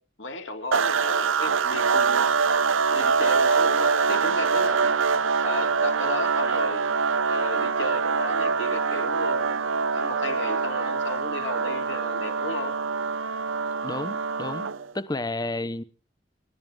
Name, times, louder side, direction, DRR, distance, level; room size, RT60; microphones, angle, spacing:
voice 1, 0.2-2.3 2.9-5.0 5.4-6.8 7.3-9.6 9.9-12.7, left 3 dB, 70° left, 3.2 m, -34 dB
sound 1, 0.7-14.9, right 5 dB, 80° right, 0.7 m, -24 dB
voice 2, 13.8-15.8, left 2 dB, 20° left, 0.9 m, -31 dB
29.0 x 12.0 x 3.7 m
head